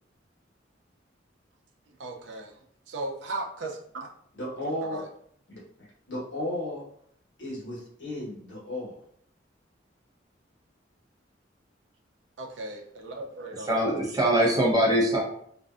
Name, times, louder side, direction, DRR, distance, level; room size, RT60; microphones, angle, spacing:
voice 1, 2.0-2.6 2.9-4.1 4.9-5.1 12.4-13.7, right 2 dB, 70° right, 2 dB, 0.5 m, -36 dB
voice 2, 4.3-5.0 5.5-5.6 6.1-6.8 7.4-9.0, left 1 dB, 75° left, -5 dB, 1.1 m, -34 dB
voice 3, 13.7-15.2, right 1 dB, 20° right, -2 dB, 0.6 m, -22 dB
2.6 x 2.2 x 2.4 m, 0.64 s
head